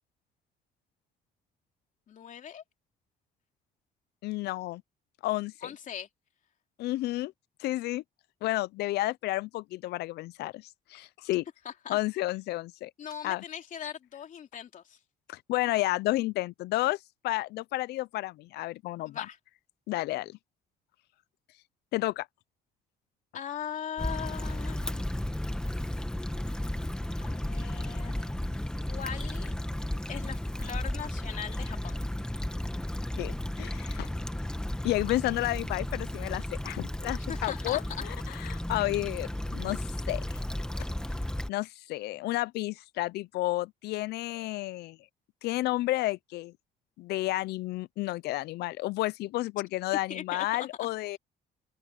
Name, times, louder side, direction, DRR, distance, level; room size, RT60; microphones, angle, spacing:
voice 1, 2.1-2.6 5.6-6.1 11.6-12.0 13.0-15.0 19.0-19.4 23.3-25.1 27.2-28.3 28.9-29.5 30.1-31.9 37.3-38.1 50.1-50.9, left 8 dB, 50° left, 3.3 m, -40 dB
voice 2, 4.2-4.8 5.2-5.7 6.8-7.3 7.6-8.0 8.4-11.4 11.9-12.9 13.2-13.4 15.3-17.0 17.2-19.3 19.9-20.4 21.9-22.3 33.2-34.1 34.8-39.8 40.1-40.2 41.5-45.0 45.4-46.5 47.0-51.2, left 17 dB, 75° left, 0.5 m, -31 dB
Stream / Traffic noise roadway noise / Trickle dribble, 24.0-41.5, left 1 dB, 5° left, 1.3 m, -34 dB
cardioid pair, 110°, 17 cm